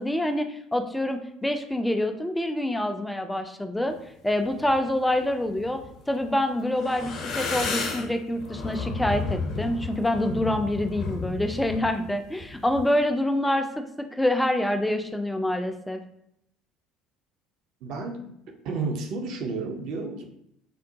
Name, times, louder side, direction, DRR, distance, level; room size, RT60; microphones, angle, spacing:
voice 1, 0.0-4.0 4.2-5.8 6.1-13.7 14.0-16.0, left 1 dB, 5° left, 6 dB, 0.3 m, -26 dB
sound 1, 4.4-4.8 5.4-6.4 6.7-12.9, left 4 dB, 50° left, 0.6 m, -32 dB
voice 2, 17.8-18.2 18.6-20.2, right 4 dB, 50° right, 3 dB, 0.5 m, -31 dB
3.7 x 2.1 x 2.7 m, 0.75 s
figure-of-eight pair, 60°, 0 cm